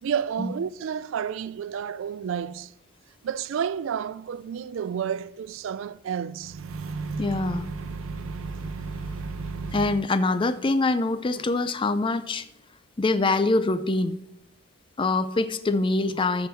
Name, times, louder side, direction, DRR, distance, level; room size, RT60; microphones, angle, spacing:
voice 1, 0.0-2.7 3.2-6.6, right 8 dB, 65° right, 0.3 m, -30 dB
sound 1, 6.4-10.1, right 4 dB, 80° right, 0.7 m, -34 dB
voice 2, 7.2-7.7 9.7-12.5 13.0-14.2 15.0-16.5, left 3 dB, 25° left, 0.4 m, -24 dB
7.9 x 6.2 x 6.8 m
head